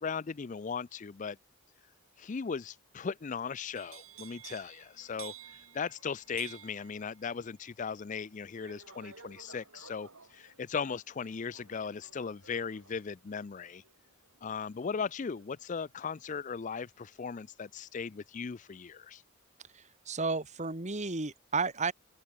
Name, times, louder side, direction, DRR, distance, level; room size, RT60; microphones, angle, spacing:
voice 1, 0.0-1.4 2.2-13.8 14.4-19.2, left 5 dB, 35° left, 0.4 m, -38 dB
sound 1, 3.8-15.7 16.1-16.5, right 9 dB, 90° right, 7.4 m, -54 dB
voice 2, 19.7-21.9, right 4 dB, 35° right, 1.7 m, -33 dB
open air
head